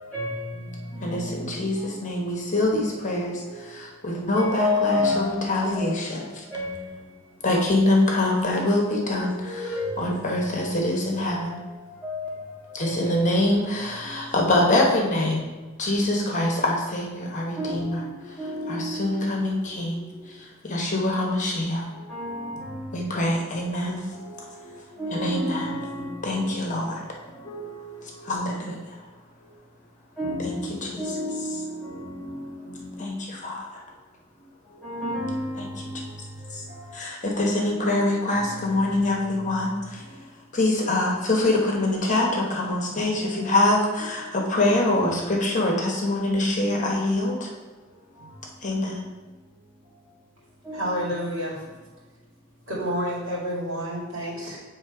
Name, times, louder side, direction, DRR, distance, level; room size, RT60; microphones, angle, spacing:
voice 1, 0.0-2.5 2.9-3.0 3.3-7.4 8.9-13.2 13.7-14.4 17.4-20.3 20.8-21.0 21.8-23.2 23.8-28.3 28.8-29.8 30.1-34.0 34.3-40.6 43.2-43.6 44.0-44.4 44.8-45.2 46.3-46.8 47.7-48.7 49.4-50.1 50.6-51.2 51.5-51.6 51.9-52.0, left 1 dB, 5° left, 1.7 m, -35 dB
voice 2, 1.0-6.2 7.4-9.7 10.0-11.6 12.7-15.4 15.8-18.0 18.7-20.0 20.4-21.8 22.9-24.0 25.1-25.7 26.2-27.0 28.2-28.8 30.4-31.0 33.0-33.7 35.6-35.7 36.5-36.6 36.9-40.0 40.5-47.5 48.6-49.0, left 1 dB, 40° left, 1.0 m, -24 dB
voice 3, 50.7-51.6 52.7-54.6, equal, 70° right, 2.2 m, -29 dB
7.3 x 3.3 x 4.7 m
head